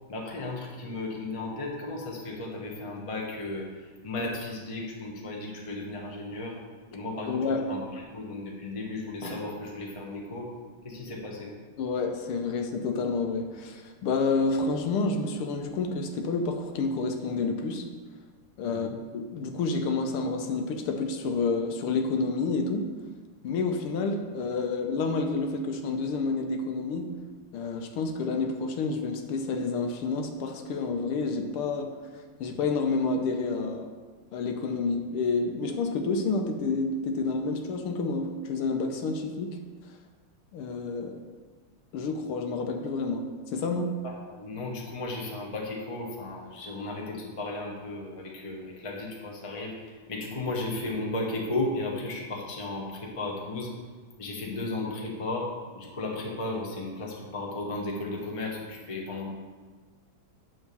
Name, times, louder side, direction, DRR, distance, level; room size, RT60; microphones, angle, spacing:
voice 1, 0.1-6.6 6.9-10.5 10.8-11.5 18.7-19.0 44.0-53.7 54.2-55.5 55.7-59.3, left 2 dB, 25° left, -1 dB, 0.8 m, -35 dB
voice 2, 7.3-7.7 11.8-17.9 18.6-22.9 23.4-27.2 27.5-32.0 32.4-33.9 34.3-39.6 40.5-41.2 41.9-43.9, left 3 dB, 85° left, 5 dB, 1.7 m, -29 dB
9.3 x 3.6 x 6.8 m, 1.4 s
omnidirectional pair, 2.4 m